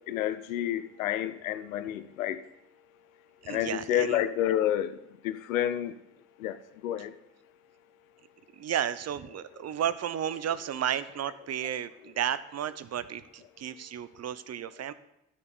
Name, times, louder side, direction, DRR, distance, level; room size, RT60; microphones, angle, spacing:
voice 1, 0.1-2.4 3.5-4.9 5.2-5.9 6.4-6.6 6.8-7.1, left 11 dB, 80° left, 0.7 m, -29 dB
voice 2, 3.4-4.2 8.5-14.9, right 9 dB, 40° right, 0.8 m, -33 dB
9.5 x 6.7 x 8.7 m
figure-of-eight pair, 45°, 41 cm